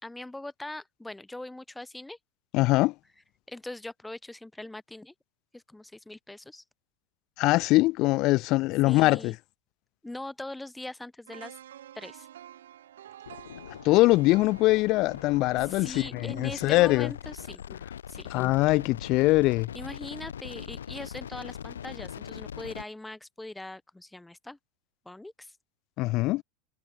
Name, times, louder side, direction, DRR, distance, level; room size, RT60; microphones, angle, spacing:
voice 1, 0.0-2.2 2.7-2.8 3.5-5.1 5.5-6.6 8.9-9.4 10.0-11.6 11.9-12.3 15.6-17.6 18.1-18.3 19.7-24.6 25.1-25.6, left 2 dB, 5° left, 3.9 m, -41 dB
voice 2, 2.5-2.9 7.4-9.3 13.8-17.1 18.3-19.7 26.0-26.4, left 20 dB, 45° left, 0.9 m, -22 dB
sound 1, 11.3-17.3 17.7-17.8, right 11 dB, 65° right, 6.3 m, -50 dB
sound 2, 13.2-22.8, left 9 dB, 70° left, 2.6 m, -42 dB
figure-of-eight pair, 85°, 0 cm